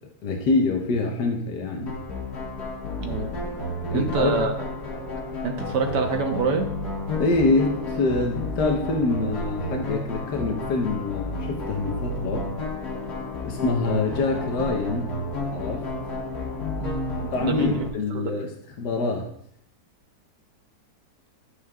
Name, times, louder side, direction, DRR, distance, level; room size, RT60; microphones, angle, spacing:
voice 1, 0.2-2.0 3.9-4.4 7.1-12.5 13.4-15.2 15.5-15.9 17.3-19.3, left 3 dB, 80° left, 2 dB, 1.6 m, -25 dB
sound 1, 1.9-17.9, left 2 dB, 65° left, 1.9 m, -31 dB
voice 2, 3.9-4.6 5.4-6.7 16.8-17.8 18.1-18.3, right 4 dB, 90° right, 4 dB, 1.7 m, -26 dB
11.5 x 8.5 x 2.3 m, 0.66 s
omnidirectional pair, 1.8 m